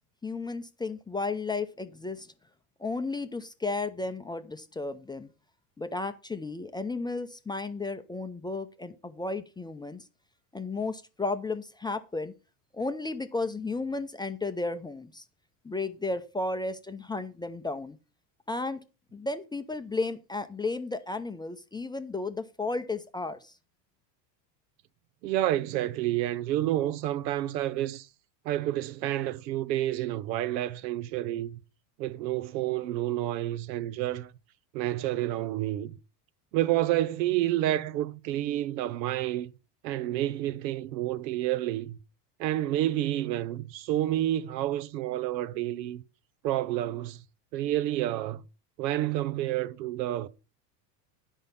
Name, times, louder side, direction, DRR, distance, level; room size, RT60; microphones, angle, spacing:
voice 1, 0.2-2.3 2.8-5.3 5.8-10.0 10.5-12.3 12.7-15.2 15.6-18.0 18.5-18.8 19.1-23.5, left 3 dB, 10° left, 0.5 m, -33 dB
voice 2, 25.2-28.1 28.4-31.6 32.0-34.3 34.7-36.0 36.5-39.5 39.8-42.0 42.4-46.0 46.4-47.2 47.5-48.4 48.8-50.3, right 14 dB, 80° right, 0.8 m, -29 dB
10.0 x 5.4 x 5.5 m
supercardioid pair, 105°, 50 cm